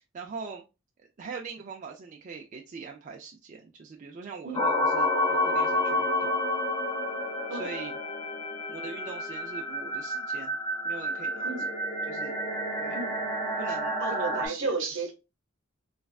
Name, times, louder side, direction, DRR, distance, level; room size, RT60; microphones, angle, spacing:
voice 1, 0.1-0.6 1.2-6.4 7.5-8.0 8.7-10.6 10.8-11.5 12.1-12.3 12.8-13.0 13.6-14.7, right 5 dB, 40° right, 0.3 m, -42 dB
sound 1, 4.5-14.5, left 1 dB, 20° left, 0.7 m, -29 dB
voice 2, 14.0-15.1, right 3 dB, 65° right, 0.8 m, -32 dB
3.2 x 2.3 x 2.3 m
head